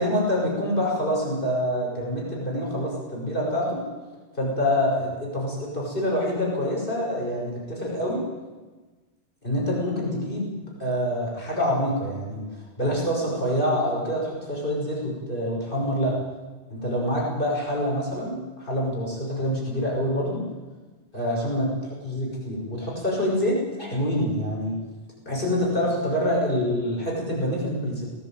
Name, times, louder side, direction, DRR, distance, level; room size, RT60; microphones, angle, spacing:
voice 1, 0.0-3.8 4.4-8.2 9.4-12.5 12.8-16.2 16.7-20.4 21.1-24.8 25.2-28.1, equal, 50° left, -3 dB, 6.6 m, -26 dB
20.0 x 19.0 x 9.1 m, 1.3 s
omnidirectional pair, 1.2 m